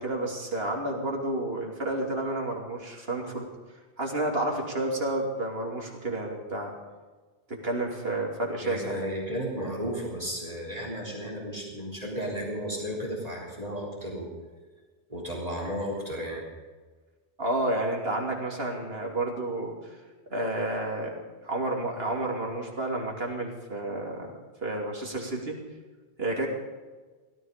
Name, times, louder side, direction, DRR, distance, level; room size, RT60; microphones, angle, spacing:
voice 1, 0.0-3.5 4.0-6.7 7.5-9.0 17.4-19.9 20.3-21.2 21.4-24.3 24.6-25.6 26.2-26.5, right 1 dB, 70° right, 0 dB, 3.3 m, -30 dB
voice 2, 8.6-14.3 15.1-16.4, equal, 35° right, -1 dB, 3.8 m, -33 dB
17.0 x 13.5 x 5.2 m, 1.3 s
omnidirectional pair, 1.1 m